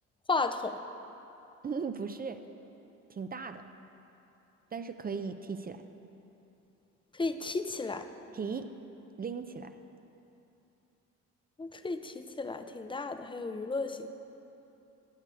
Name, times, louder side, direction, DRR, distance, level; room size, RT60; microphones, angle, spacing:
voice 1, 0.3-0.8 7.1-8.1 11.6-14.1, left 3 dB, 15° left, 9 dB, 0.6 m, -33 dB
voice 2, 1.6-2.4 3.1-3.6 4.7-5.8 8.3-8.7 9.2-9.7, right 5 dB, 30° right, 9 dB, 0.5 m, -37 dB
14.0 x 8.3 x 4.7 m, 2.9 s
cardioid pair, 90°, 30 cm